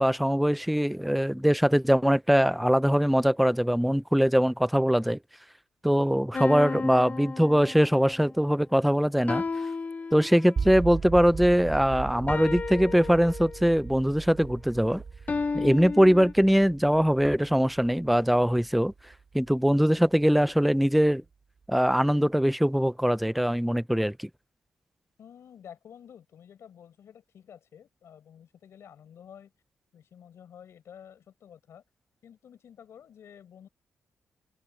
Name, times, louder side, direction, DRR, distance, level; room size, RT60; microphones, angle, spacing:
voice 1, 0.0-5.2 5.8-9.4 10.1-15.0 15.5-18.9 19.3-21.2 21.7-24.3, equal, ahead, 0.4 m, -22 dB
sound 1, 6.3-8.1 9.3-10.7 12.3-13.8 15.3-16.3, left 4 dB, 35° left, 1.2 m, -33 dB
sound 2, 10.6-20.5, right 5 dB, 40° right, 4.8 m, -38 dB
voice 2, 25.2-29.5 29.9-31.8 32.2-33.7, left 8 dB, 70° left, 5.3 m, -50 dB
open air
wide cardioid pair, 130°, 5 cm